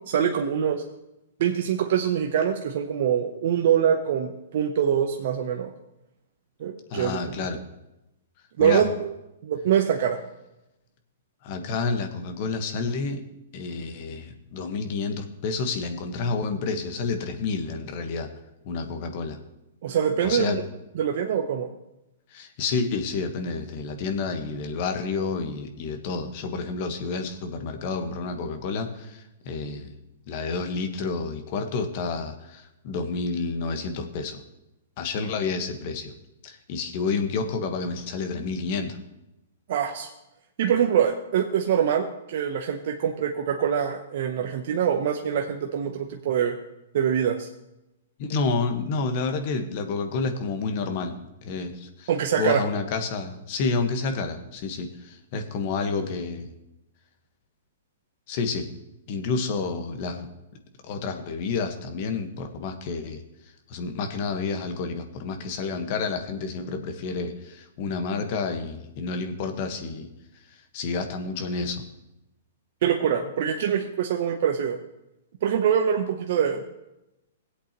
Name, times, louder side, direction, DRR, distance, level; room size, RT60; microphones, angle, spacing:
voice 1, 0.1-0.8 1.4-5.7 6.6-7.2 8.6-9.1 9.4-10.2 19.8-20.7 21.0-21.7 39.7-40.1 40.6-46.6 46.9-47.5 52.1-52.6 72.8-74.8 75.4-76.6, right 8 dB, 60° right, 3 dB, 0.8 m, -24 dB
voice 2, 6.9-7.6 8.6-8.8 11.4-13.2 13.5-18.3 18.6-19.4 20.2-20.6 22.3-29.9 30.3-34.4 35.0-36.1 36.4-39.0 48.2-51.1 51.4-52.1 52.4-56.5 58.3-58.7 59.1-60.3 60.9-63.2 63.7-70.1 70.7-71.8, left 4 dB, 50° left, 6 dB, 1.4 m, -29 dB
18.0 x 8.1 x 3.1 m, 0.93 s
hypercardioid pair, 125°, 0 cm